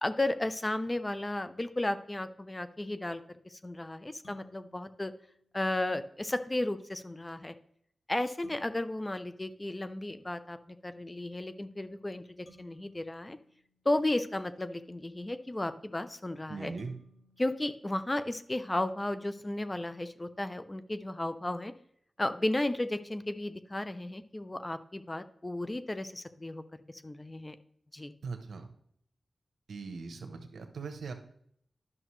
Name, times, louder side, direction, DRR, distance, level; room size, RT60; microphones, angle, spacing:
voice 1, 0.0-5.1 5.5-7.5 8.1-10.6 10.8-12.2 12.6-13.4 13.8-16.7 17.4-21.7 22.2-26.6 27.0-27.6 27.9-28.1, left 1 dB, 25° left, 11 dB, 0.6 m, -34 dB
sound 1, 4.2-5.9 8.4-10.4 12.5-14.6 16.8-18.8, left 1 dB, 60° left, 2.0 m, -64 dB
voice 2, 16.5-17.0 28.2-28.7 29.7-31.1, right 4 dB, 85° right, 6 dB, 1.0 m, -40 dB
11.0 x 6.1 x 3.2 m, 0.66 s
cardioid pair, 55°, 0 cm